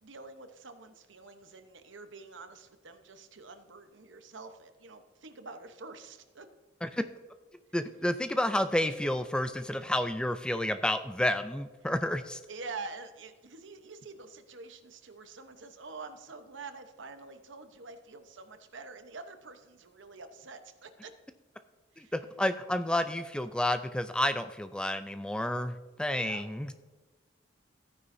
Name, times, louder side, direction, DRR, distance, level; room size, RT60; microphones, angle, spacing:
voice 1, 0.0-6.5 12.5-21.1 21.9-22.1 26.1-26.5, right 3 dB, 80° right, 8 dB, 1.0 m, -46 dB
voice 2, 7.7-12.4 22.0-26.7, left 1 dB, 5° left, 10 dB, 0.3 m, -30 dB
14.0 x 9.6 x 2.7 m, 1.2 s
head